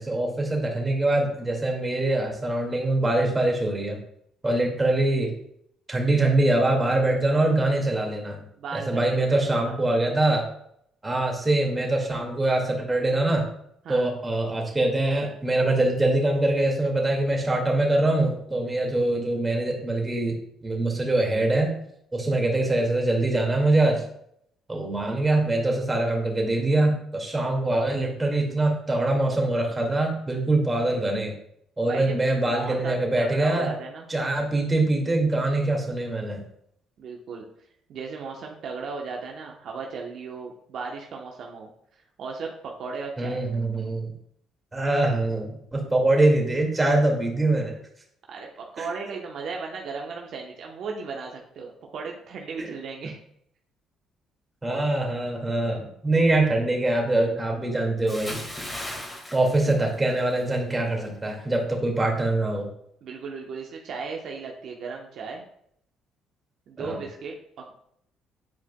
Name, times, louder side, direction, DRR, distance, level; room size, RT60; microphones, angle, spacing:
voice 1, 0.0-4.0 4.4-5.3 5.9-8.4 8.7-10.4 11.0-13.5 13.9-20.4 20.6-21.7 22.1-24.0 24.7-31.3 31.8-33.7 34.1-36.4 43.2-44.1 44.7-47.7 48.8-48.9 52.6-52.7 54.6-58.4 59.3-62.7 66.8-67.0, right 2 dB, 20° right, 1 dB, 2.0 m, -23 dB
voice 2, 8.6-10.0 13.8-14.1 31.8-32.2 32.4-34.1 37.0-37.4 37.9-41.7 42.2-43.4 48.3-53.2 63.0-65.4 66.7-67.7, right 4 dB, 65° right, 0 dB, 0.9 m, -36 dB
Bathtub (filling or washing) / Splash splatter, 58.1-60.5 60.8-61.1, left 1 dB, 20° left, 1.8 m, -37 dB
9.5 x 4.5 x 2.2 m, 0.70 s
supercardioid pair, 70°, 0 cm